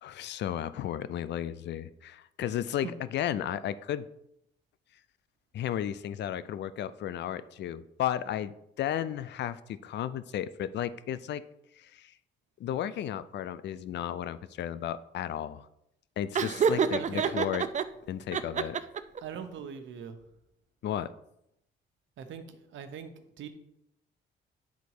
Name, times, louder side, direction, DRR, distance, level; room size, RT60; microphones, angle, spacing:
voice 1, 0.0-4.1 5.5-11.4 11.8-12.1 12.6-15.7 16.2-17.6 18.1-18.8 20.8-21.1, left 10 dB, 60° left, 15 dB, 0.5 m, -34 dB
Laughter, 16.3-17.8 18.3-19.2, right 6 dB, 40° right, 0.5 m, -27 dB
voice 2, 16.6-17.4 19.2-20.2 22.2-23.5, right 7 dB, 70° right, 7 dB, 1.0 m, -42 dB
9.4 x 4.0 x 4.8 m, 0.79 s
cardioid pair, 90°, 20 cm